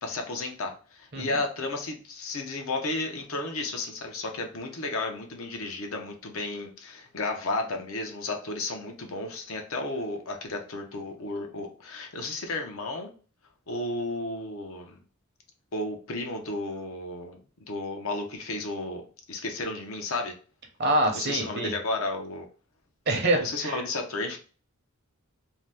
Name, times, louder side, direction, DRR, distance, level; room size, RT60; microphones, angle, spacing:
voice 1, 0.0-13.1 13.7-15.0 15.7-17.4 17.7-20.4 21.1-22.5 23.4-24.4, left 2 dB, 70° left, 3 dB, 0.6 m, -33 dB
voice 2, 20.8-21.7 23.1-23.8, right 1 dB, 50° right, 2 dB, 0.7 m, -26 dB
2.7 x 2.1 x 3.3 m, 0.38 s
head